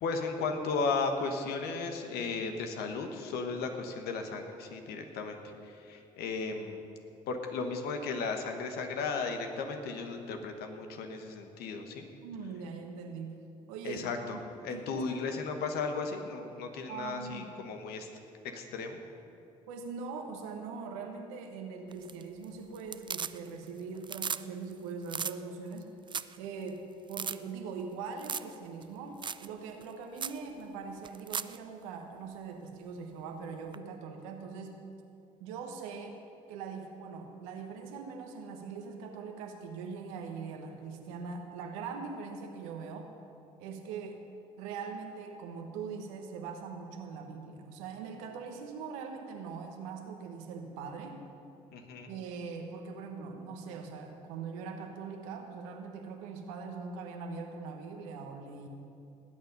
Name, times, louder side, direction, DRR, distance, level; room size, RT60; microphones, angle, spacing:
voice 1, 0.0-6.8 7.3-12.0 13.8-18.1 18.5-19.0 51.7-52.1, left 4 dB, 70° left, 5 dB, 1.4 m, -35 dB
voice 2, 12.2-13.4 13.7-15.2 16.9-17.5 19.7-25.9 26.4-26.8 27.1-34.8 35.4-36.2 36.5-43.1 43.6-44.2 44.6-51.2 52.1-58.7, right 5 dB, 80° right, 4 dB, 1.4 m, -42 dB
sound 1, 21.9-22.4 22.7-23.7 24.0-24.4 24.7-24.8 25.1-25.3 25.8-25.9 26.1-26.4 26.7-26.8 27.1-27.4 28.2-28.5 28.8-28.9 29.2-29.5 29.8-29.9 30.2-30.4 31.0-31.6 33.7-33.8, right 6 dB, 30° right, 0.4 m, -36 dB
18.5 x 8.8 x 5.4 m, 2.7 s
hypercardioid pair, 50°, 17 cm